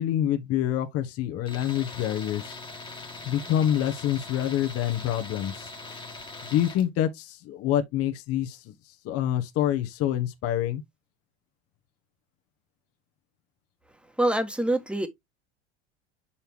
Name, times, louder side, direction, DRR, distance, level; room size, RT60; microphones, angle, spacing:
voice 1, 0.0-2.5 3.3-5.7 6.5-8.6 9.0-10.8, left 11 dB, 50° left, 1.2 m, -26 dB
Tools, 1.5-6.9, left 3 dB, 15° left, 1.6 m, -41 dB
voice 2, 14.2-15.1, right 1 dB, 5° right, 1.4 m, -25 dB
6.6 x 5.7 x 2.9 m
hypercardioid pair, 95°, 31 cm